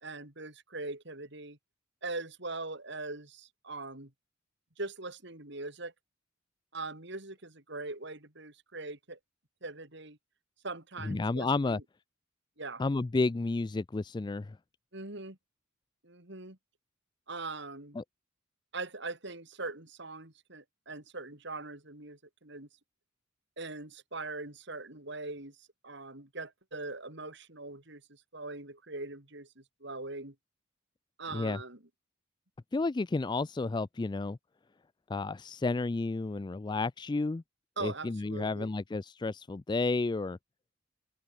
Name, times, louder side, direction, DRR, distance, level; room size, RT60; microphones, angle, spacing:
voice 1, 0.0-1.6 2.0-4.1 4.8-5.9 6.7-9.2 9.6-10.2 10.6-11.8 12.6-12.8 14.9-15.4 16.0-16.6 17.3-18.0 18.7-22.7 23.6-25.6 25.8-30.3 31.2-31.8 37.8-38.7, right 3 dB, 60° right, 4.2 m, -41 dB
voice 2, 11.0-11.8 12.8-14.6 18.0-18.1 31.3-31.6 32.7-34.4 35.1-37.4 37.8-40.4, left 3 dB, 20° left, 0.3 m, -31 dB
head